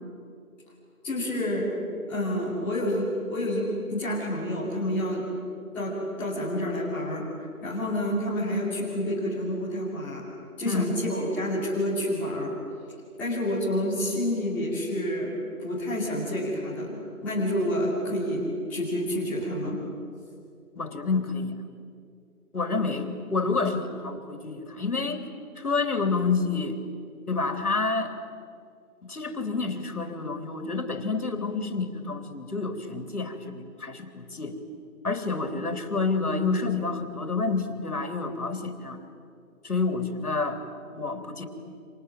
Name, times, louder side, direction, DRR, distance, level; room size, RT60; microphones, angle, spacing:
voice 1, 1.0-1.7 2.1-5.2 5.7-7.2 7.6-10.2 10.6-12.5 13.2-16.9 17.2-18.4 18.7-19.8, left 1 dB, 5° left, -10 dB, 2.7 m, -28 dB
voice 2, 10.6-10.9 20.8-21.5 22.5-25.3 25.6-26.8 27.3-28.1 29.0-34.6 35.0-39.0 39.6-40.6 40.9-41.4, left 4 dB, 85° left, 6 dB, 3.7 m, -29 dB
28.0 x 27.0 x 7.7 m, 2.4 s
figure-of-eight pair, 170°, 44 cm